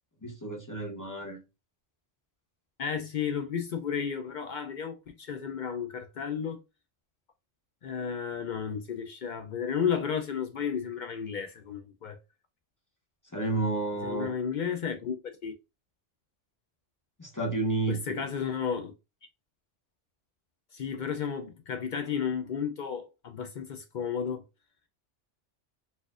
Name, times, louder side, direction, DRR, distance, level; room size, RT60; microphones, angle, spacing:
voice 1, 0.2-1.4 13.3-14.3 17.2-18.2, right 2 dB, 20° left, 0.7 m, -31 dB
voice 2, 2.8-6.6 7.8-12.2 14.0-15.2 15.4-15.5 17.9-18.9 20.7-24.4, left 7 dB, 60° left, 0.5 m, -33 dB
4.1 x 2.5 x 2.4 m
omnidirectional pair, 1.2 m